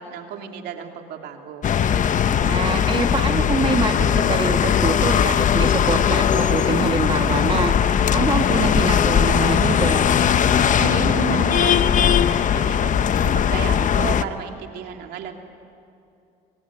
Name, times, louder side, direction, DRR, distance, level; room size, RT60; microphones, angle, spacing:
voice 1, 0.0-1.7 10.8-15.3, right 8 dB, 80° right, 3 dB, 2.8 m, -32 dB
sound 1, 1.6-14.2, left 8 dB, 50° left, 1.0 m, -19 dB
voice 2, 2.3-7.8 8.1-10.1, right 4 dB, 30° right, 4 dB, 2.1 m, -25 dB
24.5 x 23.5 x 10.0 m, 2.6 s
cardioid pair, 90°, 17 cm